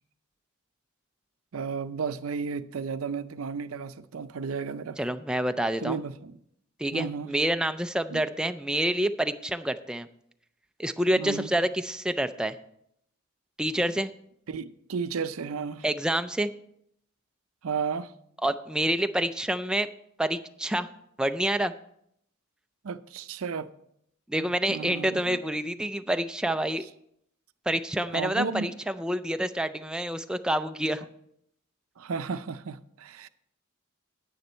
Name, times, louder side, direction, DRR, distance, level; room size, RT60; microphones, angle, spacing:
voice 1, 1.5-5.0 5.8-6.4 6.9-7.3 8.1-8.2 11.2-11.5 14.5-15.9 17.6-18.1 22.8-23.7 24.4-25.4 28.1-28.7 32.0-33.3, right 5 dB, 85° right, 0.5 m, -33 dB
voice 2, 5.0-6.0 6.8-10.1 10.8-12.6 13.6-14.1 15.8-16.5 18.4-19.9 20.2-20.9 21.2-21.7 24.3-26.9 27.7-31.1, right 1 dB, 5° right, 0.3 m, -27 dB
9.6 x 9.3 x 4.4 m
head